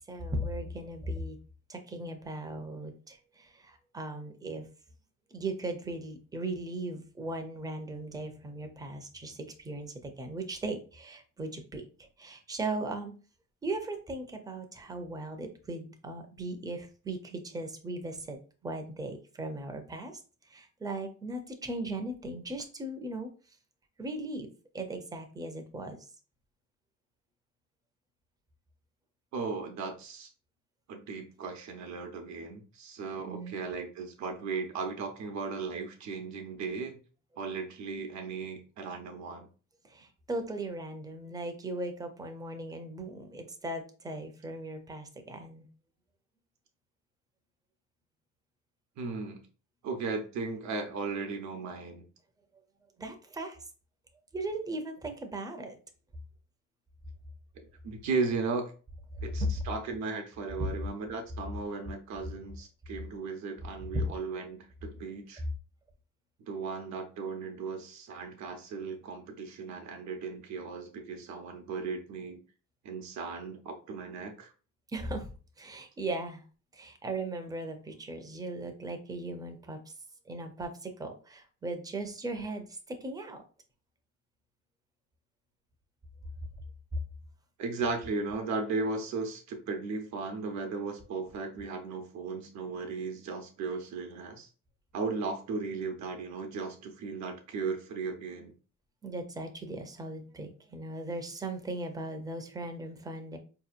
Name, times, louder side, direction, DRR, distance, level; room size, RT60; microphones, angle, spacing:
voice 1, 0.1-1.4 1.7-4.7 5.3-11.8 12.2-13.1 13.6-20.1 20.5-23.3 24.0-24.5 24.7-26.0 33.2-33.6 39.8-45.7 53.0-53.6 54.3-55.8 59.4-59.5 63.9-64.0 74.9-75.3 75.6-76.4 76.7-79.8 80.3-83.4 99.0-103.4, right 2 dB, 15° right, 5 dB, 0.5 m, -38 dB
voice 2, 29.3-30.3 30.9-37.0 37.4-39.5 49.0-49.4 49.8-52.0 57.6-58.7 59.2-65.4 66.5-72.4 72.8-74.5 87.6-94.5 94.9-98.5, right 4 dB, 65° right, 4 dB, 0.7 m, -36 dB
4.7 x 2.8 x 2.4 m, 0.37 s
cardioid pair, 175°, 30 cm